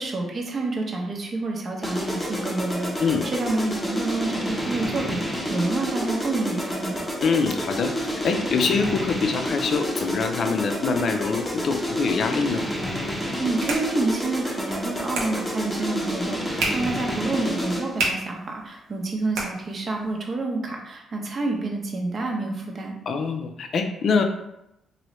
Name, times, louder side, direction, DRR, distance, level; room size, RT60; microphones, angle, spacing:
voice 1, 0.0-7.1 13.4-22.9, right 3 dB, 45° right, 1 dB, 0.7 m, -28 dB
sound 1, 1.8-18.0, equal, 15° left, 0.9 m, -29 dB
voice 2, 7.2-12.6 23.1-24.2, left 5 dB, 55° left, 5 dB, 0.4 m, -24 dB
sound 2, 13.1-20.2, right 2 dB, 85° right, 0.8 m, -34 dB
3.0 x 2.7 x 3.0 m, 0.84 s
cardioid pair, 90°, 0 cm